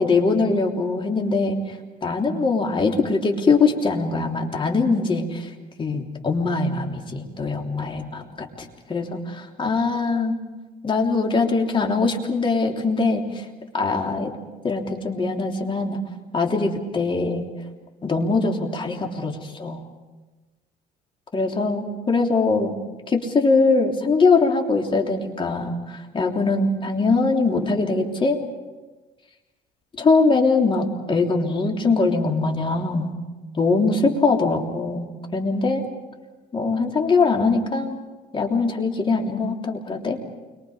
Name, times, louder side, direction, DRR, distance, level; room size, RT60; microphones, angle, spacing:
voice 1, 0.0-1.6 2.0-5.5 5.8-10.3 10.8-13.4 13.7-14.3 14.6-16.0 16.3-17.5 18.0-19.8 21.3-22.7 23.1-28.4 30.0-33.1 33.6-35.8 36.5-38.0 38.3-40.2, left 3 dB, 30° left, 1 dB, 3.4 m, -22 dB
29.0 x 23.5 x 5.1 m, 1.2 s
cardioid pair, 110°, 17 cm